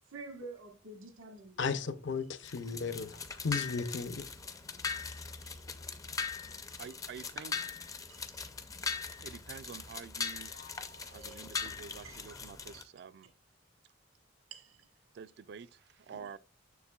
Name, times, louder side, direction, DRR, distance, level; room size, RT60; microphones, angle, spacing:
voice 1, 0.1-1.6 6.7-7.0 8.1-8.5 11.0-11.4 11.8-12.3 14.5-14.9 16.1-16.3, right 3 dB, 80° right, 1.3 m, -50 dB
voice 2, 1.6-3.1 3.4-4.2, left 5 dB, 60° left, 0.6 m, -34 dB
sound 1, 2.4-12.8, left 5 dB, 15° left, 0.4 m, -40 dB
voice 3, 6.8-7.7 9.2-10.5 11.1-13.3 15.1-16.4, right 6 dB, 55° right, 0.3 m, -48 dB
sound 2, 7.2-8.2 10.4-11.9, left 3 dB, 75° left, 1.3 m, -58 dB
7.0 x 6.6 x 2.3 m
head